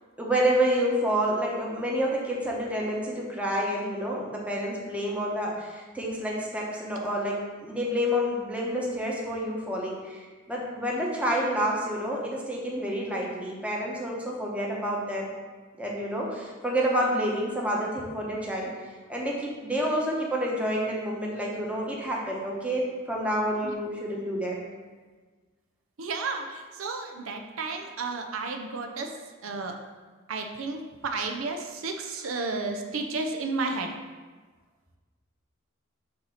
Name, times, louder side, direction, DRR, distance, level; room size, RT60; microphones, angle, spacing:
voice 1, 0.2-7.3 7.6-15.3 15.8-18.7 19.1-24.5, equal, 5° right, -3 dB, 0.9 m, -28 dB
voice 2, 26.0-29.1 29.4-29.8 30.3-33.9, right 3 dB, 70° right, 4 dB, 0.5 m, -32 dB
6.5 x 2.8 x 5.6 m, 1.4 s
head